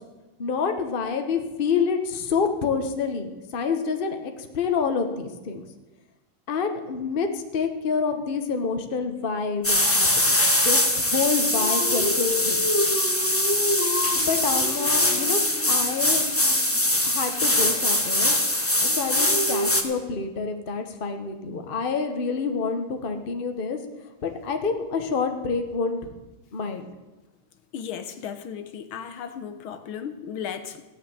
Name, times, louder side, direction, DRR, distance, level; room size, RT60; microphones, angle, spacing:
voice 1, 0.4-5.6 6.5-10.4 10.6-12.6 14.1-15.4 15.6-16.2 17.1-18.3 18.8-23.8 24.2-26.1 26.5-26.9, left 5 dB, 35° left, 6 dB, 1.0 m, -27 dB
sound 1, 9.6-19.8, left 1 dB, 10° left, 0.7 m, -22 dB
voice 2, 27.7-30.8, left 8 dB, 80° left, 8 dB, 1.8 m, -35 dB
16.0 x 6.7 x 8.9 m, 1.1 s
omnidirectional pair, 2.3 m